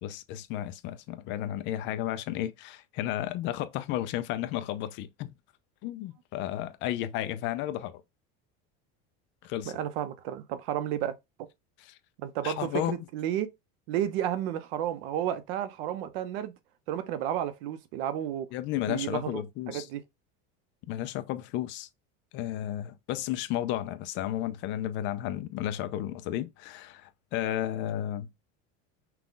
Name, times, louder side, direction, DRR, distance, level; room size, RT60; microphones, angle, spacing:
voice 1, 0.0-5.3 5.8-8.0 9.4-9.8 11.8-12.0 12.4-13.1 18.5-19.9 20.9-21.9 22.3-28.3, left 12 dB, 40° left, 0.4 m, -33 dB
voice 2, 9.7-11.2 12.2-13.5 13.9-16.5 16.9-18.5 18.9-20.0, right 11 dB, 70° right, 0.8 m, -32 dB
5.9 x 2.3 x 3.8 m
cardioid pair, 175°, 30 cm